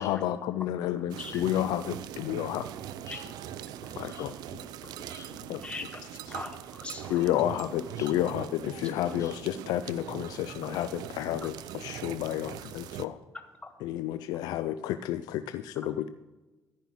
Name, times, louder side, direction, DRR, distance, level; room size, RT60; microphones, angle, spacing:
voice 1, 0.0-2.7 4.0-4.3 5.5-5.6 7.1-13.2 13.8-16.1, left 12 dB, 90° left, 12 dB, 0.4 m, -31 dB
voice 2, 0.9-1.4 2.3-2.5 2.9-3.3 3.8-5.6 7.1-8.6 9.2-9.7 10.1-10.4 12.1-12.2, left 3 dB, 50° left, 1 dB, 2.9 m, -50 dB
sound 1, 1.1-13.1, right 11 dB, 80° right, 0.5 m, -42 dB
voice 3, 5.6-6.0 6.3-7.3 13.6-13.7, left 3 dB, 15° left, 7 dB, 0.9 m, -40 dB
14.0 x 5.4 x 6.1 m, 1.1 s
cardioid pair, 80°, 7 cm